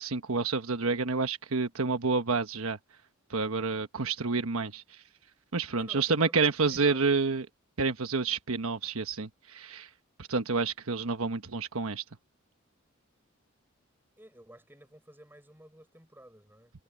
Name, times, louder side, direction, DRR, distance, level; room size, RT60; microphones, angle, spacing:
voice 1, 0.0-2.8 3.3-4.8 5.5-7.5 7.8-9.9 10.3-12.0, right 4 dB, 80° right, 1.2 m, -29 dB
voice 2, 5.8-7.2 14.2-16.7, right 1 dB, 10° right, 6.8 m, -52 dB
head